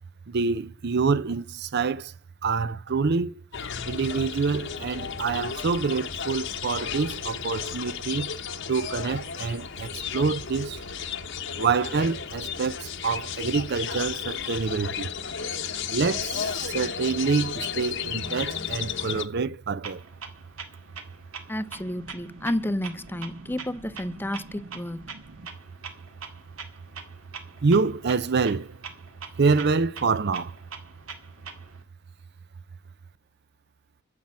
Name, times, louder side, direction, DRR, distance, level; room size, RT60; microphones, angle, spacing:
voice 1, 0.3-2.1 2.4-3.4 3.9-8.3 8.7-10.8 11.5-15.1 15.9-20.0 23.4-23.5 25.1-25.5 27.6-28.8 29.4-30.5, right 4 dB, 50° right, 0.5 m, -26 dB
sound 1, 3.5-19.2, left 7 dB, 60° left, 1.0 m, -34 dB
Clock, 19.8-31.8, right 5 dB, 70° right, 2.0 m, -44 dB
voice 2, 21.5-25.1, left 1 dB, 10° left, 0.5 m, -31 dB
9.7 x 7.4 x 8.7 m
head